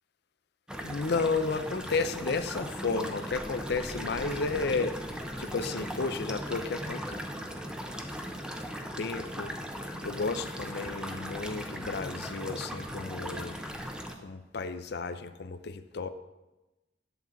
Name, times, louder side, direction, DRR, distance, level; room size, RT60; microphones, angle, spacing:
sound 1, 0.7-14.1, equal, 5° right, 0.8 m, -38 dB
voice 1, 0.8-7.2 9.0-9.5 10.0-13.6 14.2-16.1, left 4 dB, 65° left, 10 dB, 0.6 m, -32 dB
11.0 x 7.3 x 4.0 m, 1.1 s
head